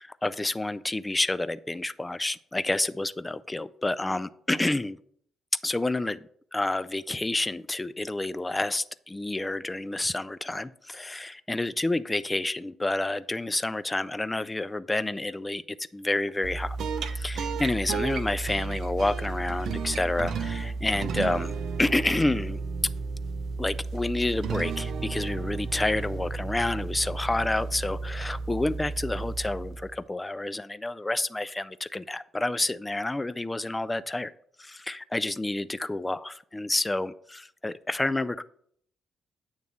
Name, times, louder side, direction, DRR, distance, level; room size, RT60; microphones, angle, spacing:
voice 1, 0.0-5.0 5.6-16.8 17.1-22.6 23.6-34.3 34.6-38.4, left 2 dB, 15° left, 15 dB, 0.3 m, -29 dB
sound 1, 16.4-30.0, right 4 dB, 70° right, 0.6 m, -33 dB
9.2 x 3.2 x 5.2 m, 0.65 s
cardioid pair, 90°, 0 cm